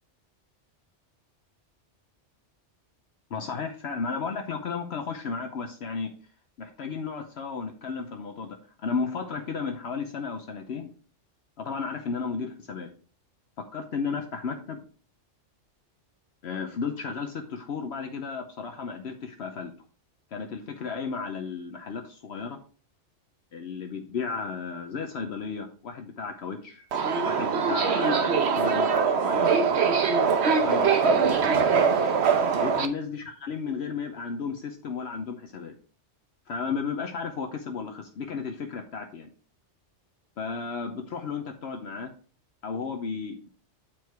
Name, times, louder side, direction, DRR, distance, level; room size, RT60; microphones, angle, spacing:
voice 1, 3.3-6.1 6.6-10.9 11.6-12.9 13.6-14.8 16.4-19.7 20.3-22.6 23.5-26.9 27.2-29.5 30.4-31.5 32.6-35.7 36.5-39.3 40.4-42.1 42.6-43.5, left 5 dB, 65° left, 5 dB, 1.0 m, -34 dB
Subway metro underground, 26.9-32.9, right 5 dB, 65° right, 1.1 m, -22 dB
8.8 x 4.6 x 4.6 m, 0.43 s
omnidirectional pair, 1.2 m